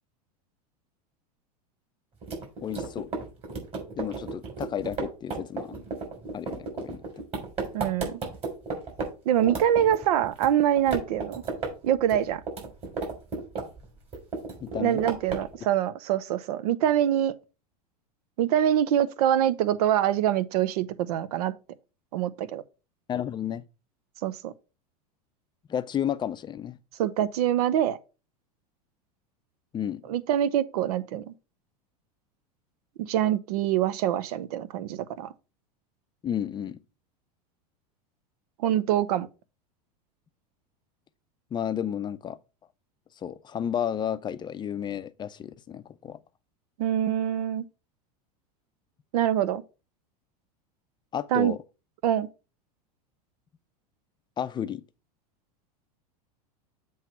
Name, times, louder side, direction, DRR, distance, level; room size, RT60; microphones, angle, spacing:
sound 1, 2.2-9.1 9.4-10.5 10.8-11.7 12.0-13.8 14.1-15.5, right 4 dB, 30° right, 3.5 m, -33 dB
voice 1, 2.6-3.1 4.0-5.7 6.3-7.0 14.6-15.0 23.1-23.6 25.7-26.8 29.7-30.0 36.2-36.8 41.5-42.4 43.2-46.2 51.1-51.6 54.4-54.8, left 9 dB, 20° left, 0.5 m, -32 dB
voice 2, 7.7-8.2 9.3-11.4 11.8-12.4 14.8-17.3 18.4-21.5 22.1-22.6 24.2-24.5 27.0-28.0 30.1-31.3 33.1-35.3 38.6-39.3 46.8-47.6 49.1-49.6 51.3-51.5 52.0-52.3, right 11 dB, 70° right, 0.7 m, -25 dB
7.5 x 3.1 x 5.6 m
hypercardioid pair, 105°, 20 cm